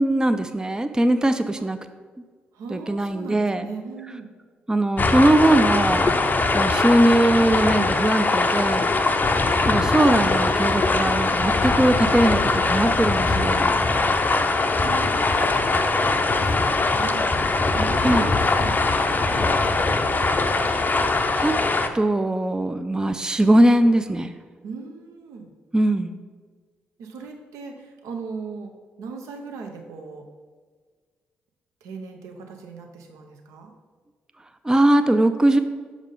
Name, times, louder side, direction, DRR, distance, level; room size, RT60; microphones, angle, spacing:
voice 1, 0.0-1.8 2.7-3.7 4.7-6.1 6.5-8.9 9.7-12.4 12.7-13.8 18.0-18.3 20.7-20.8 21.3-21.6 21.9-24.3 25.7-26.2 34.6-35.6, right 1 dB, 15° right, 9 dB, 0.4 m, -20 dB
voice 2, 2.5-4.3 10.2-10.4 14.8-17.3 17.7-20.0 24.6-25.5 27.0-28.7 29.0-30.2 31.8-33.7, right 4 dB, 70° right, 3 dB, 0.8 m, -38 dB
sound 1, 5.0-21.9, left 3 dB, 35° left, 0.6 m, -21 dB
6.3 x 4.9 x 3.8 m, 1.5 s
hypercardioid pair, 40°, 5 cm